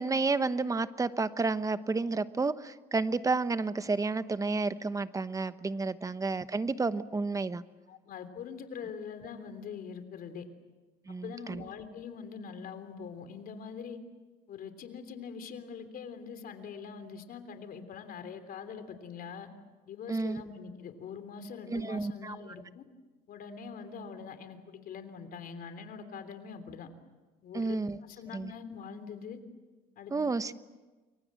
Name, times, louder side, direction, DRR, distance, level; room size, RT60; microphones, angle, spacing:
voice 1, 0.0-7.6 11.1-11.6 20.1-20.4 21.7-22.4 27.5-28.0 28.3-28.5 30.1-30.5, right 3 dB, 20° right, 13 dB, 1.0 m, -31 dB
voice 2, 7.9-10.5 11.1-14.0 14.5-19.5 19.8-22.8 23.3-26.9 27.4-27.8 28.0-29.4 30.0-30.1, left 6 dB, 60° left, 9 dB, 3.4 m, -43 dB
29.0 x 23.5 x 7.6 m, 1.3 s
cardioid pair, 110°, 17 cm